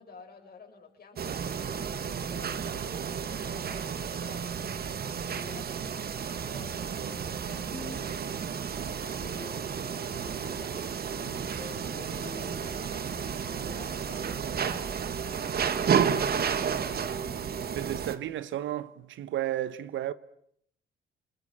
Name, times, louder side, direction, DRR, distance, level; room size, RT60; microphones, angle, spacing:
voice 1, 0.0-2.7 3.2-4.5 4.8-7.0 7.6-8.2 9.0-9.9 10.2-11.4 11.9-15.7, left 5 dB, 50° left, 6.9 m, -52 dB
sound 1, 1.2-18.2, right 7 dB, 50° right, 1.9 m, -32 dB
sound 2, 5.4-6.6 7.1-13.7, left 2 dB, 20° left, 6.5 m, -49 dB
voice 2, 17.7-20.1, right 12 dB, 75° right, 1.2 m, -33 dB
28.0 x 21.5 x 8.9 m
cardioid pair, 90°, 20 cm